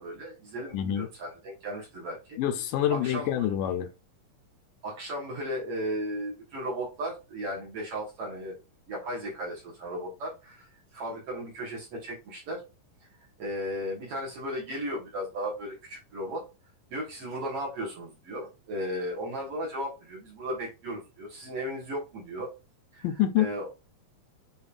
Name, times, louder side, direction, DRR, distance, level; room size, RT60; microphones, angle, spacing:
voice 1, 0.0-2.4 2.9-3.5 4.8-8.6 8.9-12.6 13.2-16.5 16.9-22.5 22.9-23.1 23.4-23.7, equal, 55° right, 1.9 m, -35 dB
voice 2, 0.7-1.1 2.4-3.9 23.0-23.5, left 11 dB, 80° left, 2.2 m, -26 dB
6.9 x 3.1 x 2.5 m
omnidirectional pair, 3.9 m